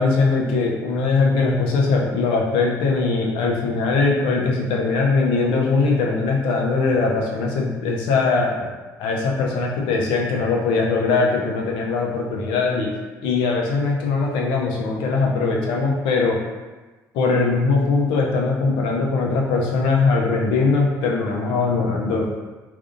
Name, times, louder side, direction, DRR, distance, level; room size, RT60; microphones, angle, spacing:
voice 1, 0.0-8.6 9.0-12.9 13.2-16.4 17.1-22.2, left 4 dB, 75° left, -1 dB, 0.6 m, -21 dB
3.6 x 2.6 x 2.5 m, 1.2 s
hypercardioid pair, 55°, 9 cm